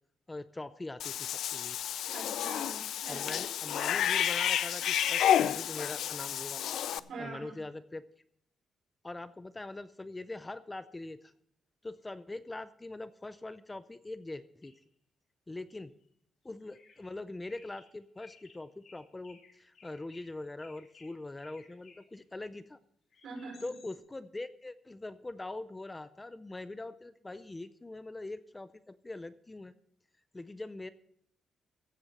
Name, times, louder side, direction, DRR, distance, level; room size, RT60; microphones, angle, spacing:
voice 1, 0.3-1.8 3.1-6.6 7.2-8.1 9.0-11.3 11.8-14.7 15.5-15.9 16.4-22.8 23.6-29.7 30.3-30.9, left 2 dB, 15° left, 13 dB, 0.4 m, -42 dB
Cat / Bathtub (filling or washing), 1.0-7.0, left 10 dB, 90° left, 0.4 m, -30 dB
voice 2, 2.1-3.3 6.9-7.5 23.2-23.6 27.3-27.4, right 3 dB, 65° right, 1 dB, 4.4 m, -44 dB
sound 1, 14.6-14.8 16.0-16.1 16.6-17.1 17.4-22.2 23.1-24.0, left 4 dB, 55° left, 2.9 m, -59 dB
15.5 x 7.6 x 5.6 m, 0.69 s
wide cardioid pair, 175°, 0 cm